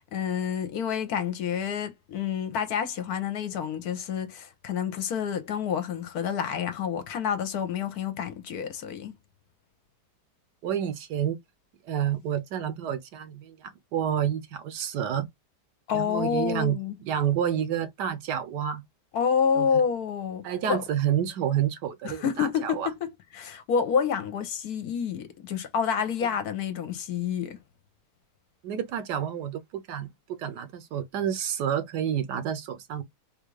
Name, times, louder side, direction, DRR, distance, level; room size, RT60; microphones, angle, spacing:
voice 1, 0.0-9.1 15.9-17.0 19.1-20.8 22.0-27.6, left 7 dB, 70° left, 1.1 m, -28 dB
voice 2, 10.6-11.4 11.8-15.3 15.9-18.8 19.6-19.7 20.4-22.9 28.6-33.0, right 9 dB, 75° right, 1.3 m, -29 dB
3.6 x 2.4 x 3.1 m
omnidirectional pair, 1.9 m